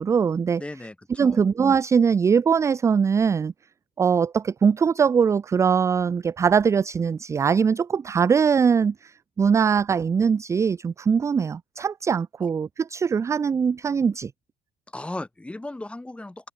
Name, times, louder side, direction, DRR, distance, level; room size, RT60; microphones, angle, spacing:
voice 1, 0.0-0.6 1.2-3.5 4.0-14.3, right 6 dB, 15° right, 0.3 m, -21 dB
voice 2, 0.6-1.4 14.9-16.5, left 2 dB, 5° left, 1.6 m, -36 dB
cardioid pair, 180°, 18 cm